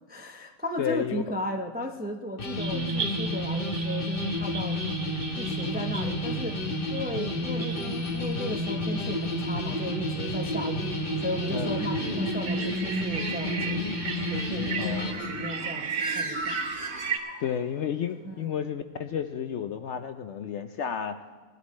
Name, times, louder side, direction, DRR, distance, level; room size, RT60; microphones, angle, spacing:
voice 1, 0.1-4.8 5.4-6.6 6.9-10.9 11.2-13.8 14.3-16.6 18.2-18.6, equal, 15° right, 4 dB, 0.3 m, -35 dB
voice 2, 0.8-1.2 2.7-3.1 11.5-12.2 14.8-15.5 17.4-21.2, left 8 dB, 65° left, 8 dB, 0.7 m, -32 dB
sound 1, 2.4-15.1, left 1 dB, 40° left, 1.3 m, -31 dB
sound 2, 2.6-17.2, right 5 dB, 80° right, 1.4 m, -36 dB
Bird, 14.7-17.8, right 2 dB, 30° right, 2.6 m, -36 dB
19.5 x 12.0 x 3.2 m, 1.5 s
omnidirectional pair, 1.6 m